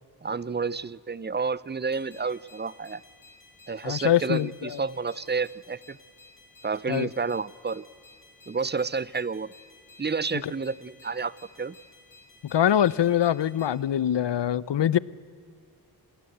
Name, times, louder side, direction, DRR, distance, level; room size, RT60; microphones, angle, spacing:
voice 1, 0.2-3.0 3.7-6.0 6.6-7.8 8.5-9.5 10.0-11.3 11.6-11.7, right 4 dB, 25° right, 0.6 m, -30 dB
sound 1, 1.9-13.8, left 3 dB, 50° left, 7.4 m, -55 dB
voice 2, 3.8-4.8 6.9-7.1 10.4-10.5 12.4-15.0, left 10 dB, 80° left, 0.7 m, -24 dB
27.0 x 20.0 x 8.0 m
wide cardioid pair, 100°, 42 cm